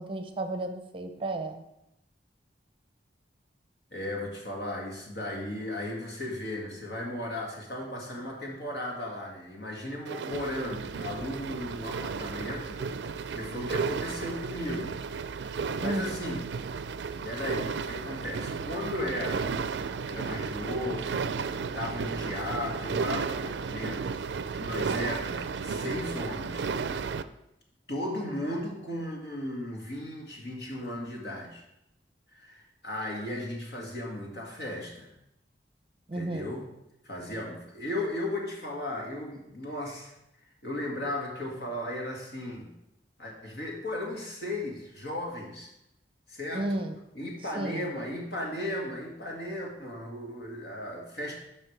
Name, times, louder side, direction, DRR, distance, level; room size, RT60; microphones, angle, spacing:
voice 1, 0.0-1.6 15.8-16.1 36.1-36.5 46.5-46.9 47.6-47.9, right 2 dB, 30° right, 6 dB, 0.6 m, -33 dB
voice 2, 3.9-12.8 13.3-15.0 15.8-16.5 17.2-19.5 20.1-21.2 21.5-24.0 24.5-26.7 27.9-31.6 32.3-35.1 36.1-36.7 37.0-40.1 40.6-42.7 43.2-45.7 46.3-46.8 47.1-51.4, left 1 dB, 65° left, -1 dB, 2.0 m, -36 dB
sound 1, 10.1-27.2, right 5 dB, 75° right, 0.4 m, -33 dB
12.0 x 5.5 x 3.3 m, 0.84 s
head